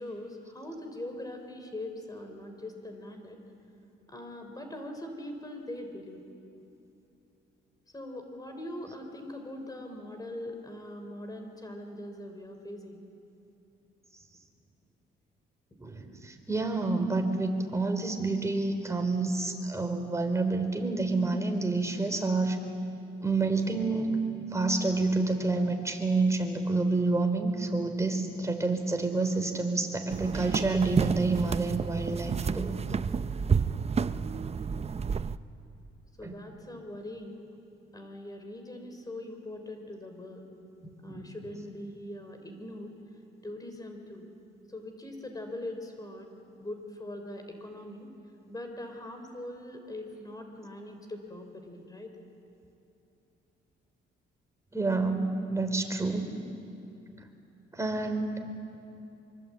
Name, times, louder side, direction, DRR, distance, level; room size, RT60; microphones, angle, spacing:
voice 1, 0.0-3.4 4.1-6.2 7.9-13.0 36.2-37.4 37.9-40.5 41.0-42.9 43.4-44.3 44.7-46.3 46.6-48.2 48.5-52.1, left 1 dB, 20° left, 5 dB, 3.7 m, -41 dB
voice 2, 15.8-22.6 23.2-24.2 24.5-32.8 36.2-36.3 41.1-41.3 54.7-56.4 57.7-58.5, right 3 dB, 15° right, 5 dB, 3.6 m, -28 dB
sound 1, 30.1-35.4, right 6 dB, 30° right, 0.7 m, -30 dB
25.5 x 23.0 x 8.6 m, 2.8 s
cardioid pair, 90°, 20 cm